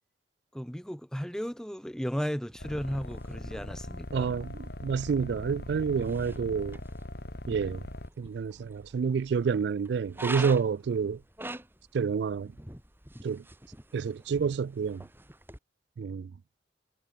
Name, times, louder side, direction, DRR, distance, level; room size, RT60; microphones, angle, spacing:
voice 1, 0.5-4.3, equal, 5° left, 1.7 m, -35 dB
sound 1, 2.5-15.6, right 2 dB, 10° right, 3.1 m, -46 dB
sound 2, 2.6-8.1, left 1 dB, 60° left, 2.1 m, -41 dB
voice 2, 4.1-6.8 7.5-7.8 8.2-11.2 11.9-12.5 13.2-13.4 13.9-15.0 16.0-16.3, right 6 dB, 65° right, 0.3 m, -29 dB
head